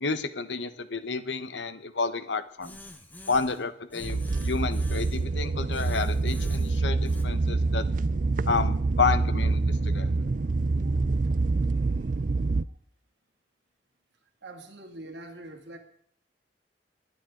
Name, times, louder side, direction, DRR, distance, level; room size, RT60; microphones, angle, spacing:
voice 1, 0.0-2.8 3.3-7.8 8.5-10.1, left 4 dB, 85° left, 12 dB, 1.1 m, -30 dB
sound 1, 2.6-3.6 3.9-5.3 5.7-7.2, left 1 dB, 10° left, 1.2 m, -47 dB
voice 2, 3.0-3.3 10.6-11.4 11.9-12.1 12.6-12.7 14.2-15.8, right 1 dB, 75° right, 4 dB, 2.5 m, -47 dB
sound 2, 4.0-12.6, right 3 dB, 45° right, 0.5 m, -26 dB
21.0 x 10.0 x 3.9 m, 0.65 s
head